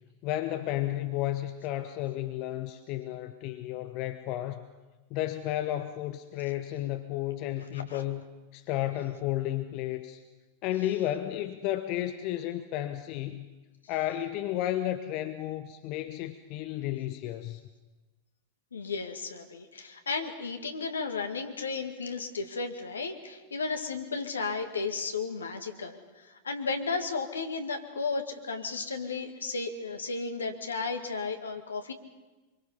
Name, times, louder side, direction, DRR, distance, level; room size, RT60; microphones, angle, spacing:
voice 1, 0.2-4.6 5.1-8.2 8.5-10.2 10.6-13.5 13.9-17.6, left 13 dB, 40° left, 9 dB, 1.0 m, -32 dB
voice 2, 18.7-31.9, left 4 dB, 70° left, 5 dB, 2.0 m, -34 dB
25.0 x 24.0 x 5.6 m, 1.2 s
figure-of-eight pair, 90°, 0 cm